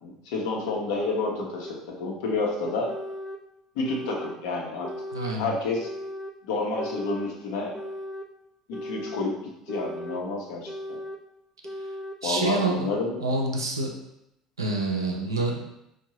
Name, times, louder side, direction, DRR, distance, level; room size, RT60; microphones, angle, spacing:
voice 1, 0.0-2.9 3.7-4.9 5.4-5.9 6.5-7.7 8.7-9.4 9.7-11.0 12.2-13.2, left 3 dB, 65° left, -1 dB, 0.8 m, -29 dB
sound 1, 0.7-0.8 1.7-1.8 2.7-3.4 3.8-4.4 4.8-5.4 5.8-6.4 6.8-7.3 7.7-8.3 8.7-9.3 9.7-10.2 10.7-11.2 11.6-12.2, left 1 dB, 15° left, 0.4 m, -37 dB
voice 2, 5.1-5.5 12.2-12.9 13.2-13.9 14.6-15.6, right 3 dB, 85° right, 1 dB, 0.5 m, -27 dB
4.4 x 2.3 x 2.9 m, 0.82 s
figure-of-eight pair, 65°, 2 cm